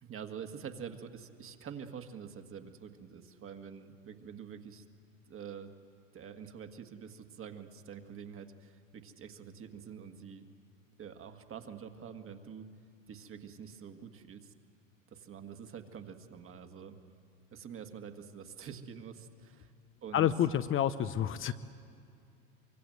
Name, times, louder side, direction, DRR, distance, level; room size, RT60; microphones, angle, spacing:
voice 1, 0.0-4.8 5.3-5.7 6.1-10.5 11.0-12.7 13.1-14.5 15.1-17.0 17.5-19.7 20.0-20.3, right 7 dB, 35° right, 6 dB, 1.9 m, -46 dB
voice 2, 20.1-21.5, left 10 dB, 35° left, 11 dB, 0.7 m, -29 dB
24.5 x 23.5 x 7.9 m, 2.4 s
hypercardioid pair, 95°, 38 cm